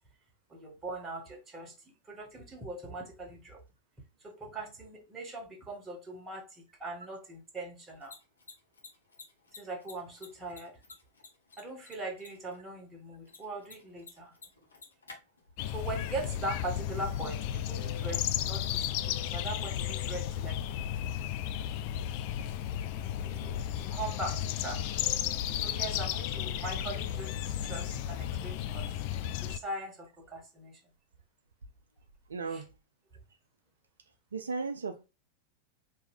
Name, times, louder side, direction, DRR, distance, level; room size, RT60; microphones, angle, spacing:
voice 1, 0.5-3.6 4.2-8.2 9.6-10.8 11.6-14.3 15.7-20.9 23.0-25.0 25.5-29.1 29.4-30.8 32.5-32.6, right 2 dB, 20° right, 1.5 m, -41 dB
Mechanisms, 7.8-21.4, left 4 dB, 75° left, 1.3 m, -57 dB
sound 1, 15.6-29.6, left 11 dB, 45° left, 0.4 m, -34 dB
voice 2, 25.4-26.0 29.0-29.1 29.5-29.6 32.3-32.7 34.3-35.1, right 4 dB, 70° right, 0.4 m, -38 dB
4.7 x 3.0 x 3.3 m
figure-of-eight pair, 90°, 0 cm